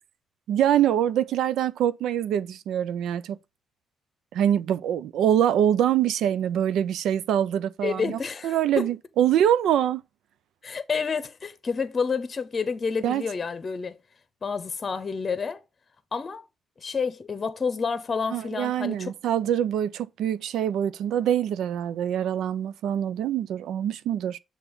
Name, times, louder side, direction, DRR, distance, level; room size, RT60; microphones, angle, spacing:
voice 1, 0.5-3.4 4.3-10.0 13.0-13.2 18.3-24.4, right 10 dB, 80° right, 0.4 m, -24 dB
voice 2, 7.8-8.8 10.6-14.0 14.4-15.6 16.1-16.4 16.8-19.1, left 5 dB, 35° left, 0.8 m, -29 dB
6.9 x 2.9 x 5.3 m
cardioid pair, 90°, 0 cm